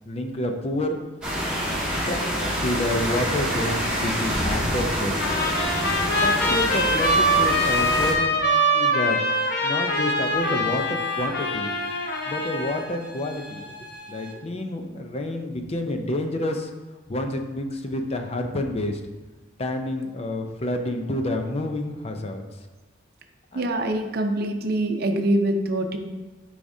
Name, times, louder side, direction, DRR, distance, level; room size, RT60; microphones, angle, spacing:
voice 1, 0.1-1.0 1.6-5.3 6.0-8.4 8.7-9.2 9.6-11.7 12.3-13.6 14.1-16.7 17.1-19.0 19.6-22.4 23.5-23.7, left 1 dB, 35° left, 5 dB, 0.6 m, -29 dB
sound 1, 1.2-8.1, equal, 5° right, 1.5 m, -26 dB
Trumpet, 5.2-12.9, equal, 60° left, 0.9 m, -23 dB
sound 2, 9.3-14.3, equal, 75° left, 2.2 m, -42 dB
voice 2, 23.5-26.0, right 1 dB, 55° right, 5 dB, 0.7 m, -24 dB
10.5 x 4.9 x 2.7 m, 1.2 s
head